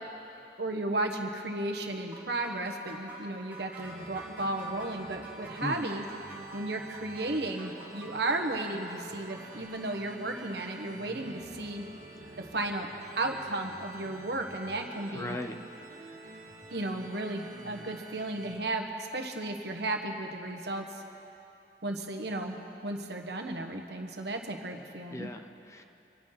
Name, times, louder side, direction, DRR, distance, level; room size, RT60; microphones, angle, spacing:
voice 1, 0.6-6.0 6.5-11.8 12.4-12.9 13.2-15.4 16.7-20.8 21.8-25.3, right 2 dB, 70° right, 3 dB, 1.4 m, -34 dB
sound 1, 2.1-10.7, right 2 dB, 10° right, 2.9 m, -48 dB
sound 2, 3.8-18.5, right 2 dB, 50° right, 1.8 m, -48 dB
voice 2, 5.6-5.9 15.1-15.6 25.1-25.8, left 1 dB, 15° left, 6 dB, 0.6 m, -37 dB
Bass guitar, 9.6-13.9 14.2-15.9, equal, 50° left, 2.9 m, -55 dB
26.0 x 9.0 x 5.9 m, 2.9 s
head